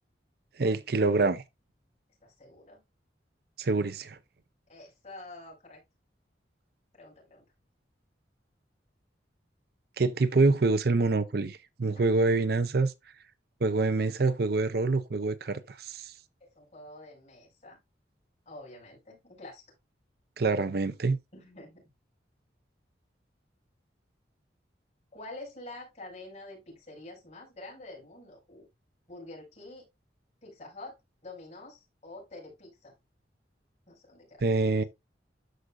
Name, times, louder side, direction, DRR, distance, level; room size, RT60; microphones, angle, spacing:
voice 1, 0.6-1.4 3.6-4.2 10.0-12.9 13.6-16.1 20.4-21.2 34.4-34.8, right 3 dB, 55° right, 0.6 m, -26 dB
voice 2, 2.2-2.8 4.7-5.8 6.9-7.4 11.9-12.1 16.4-17.8 18.5-19.6 21.3-21.9 25.1-28.7 29.1-29.9 30.4-31.0 31.2-33.0 33.9-34.6, left 2 dB, 40° left, 5.7 m, -47 dB
13.0 x 4.9 x 2.5 m
head